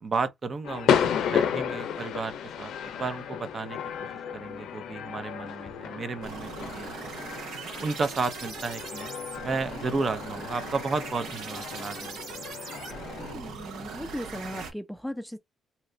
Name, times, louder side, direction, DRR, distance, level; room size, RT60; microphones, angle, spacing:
voice 1, 0.0-3.8 4.3-7.3 7.8-12.4, right 4 dB, 40° right, 0.6 m, -33 dB
sound 1, 0.6-13.3, left 8 dB, 75° left, 0.5 m, -33 dB
sound 2, 6.2-14.7, right 5 dB, 80° right, 1.0 m, -40 dB
voice 2, 13.2-15.4, left 1 dB, ahead, 0.4 m, -37 dB
2.8 x 2.4 x 3.2 m
cardioid pair, 90°, 0 cm